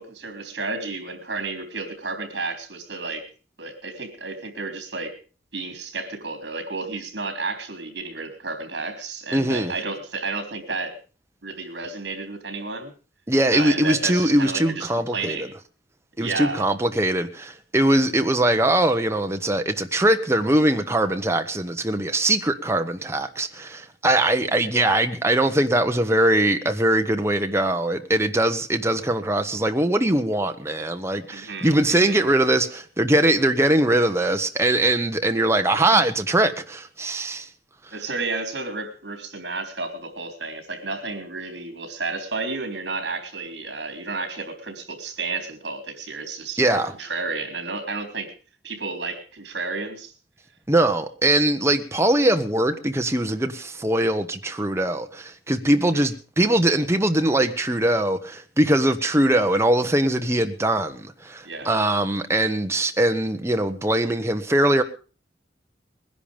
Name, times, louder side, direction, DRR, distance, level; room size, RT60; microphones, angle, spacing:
voice 1, 0.0-3.3 3.6-5.2 5.5-11.0 11.4-12.9 13.5-15.5 16.2-16.7 31.3-32.2 37.9-48.3 48.6-50.1 55.9-56.1 61.4-61.7, right 3 dB, 70° right, 3.6 m, -32 dB
voice 2, 9.3-9.7 13.3-15.5 16.2-37.5 46.6-46.9 50.7-64.8, right 1 dB, 15° right, 1.1 m, -21 dB
20.5 x 11.0 x 5.1 m
head